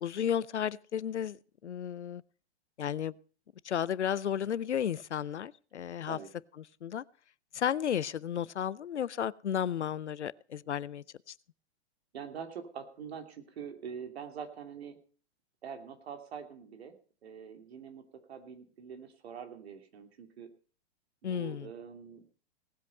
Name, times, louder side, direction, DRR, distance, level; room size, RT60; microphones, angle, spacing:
voice 1, 0.0-2.2 2.8-3.1 3.6-6.2 6.8-7.0 7.5-11.3 21.2-21.7, left 9 dB, 80° left, 0.6 m, -33 dB
voice 2, 12.1-15.0 15.6-16.9 17.2-20.5 21.2-22.4, right 7 dB, 65° right, 2.8 m, -44 dB
18.5 x 8.2 x 5.5 m
figure-of-eight pair, 110°, 34 cm